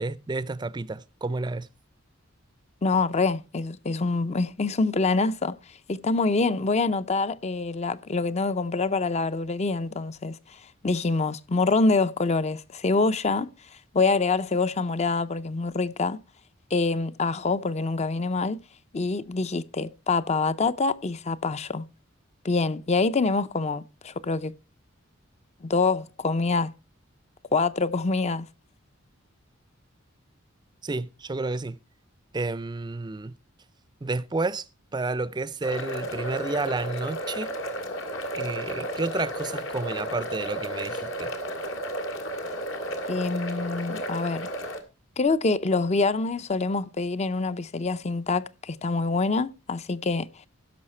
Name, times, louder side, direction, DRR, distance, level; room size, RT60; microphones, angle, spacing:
voice 1, 0.0-1.7 30.8-31.8 32.3-33.4 34.0-34.7 34.9-37.5 38.3-41.3, right 3 dB, 20° right, 0.5 m, -30 dB
voice 2, 2.8-5.6 5.9-10.6 10.8-13.5 13.9-16.2 16.7-18.6 18.9-21.8 22.4-24.5 25.6-26.7 27.5-28.5 43.1-44.5 45.2-50.3, left 3 dB, 30° left, 0.5 m, -25 dB
sound 1, 35.6-44.8, equal, 75° left, 2.0 m, -33 dB
16.0 x 6.5 x 4.3 m
head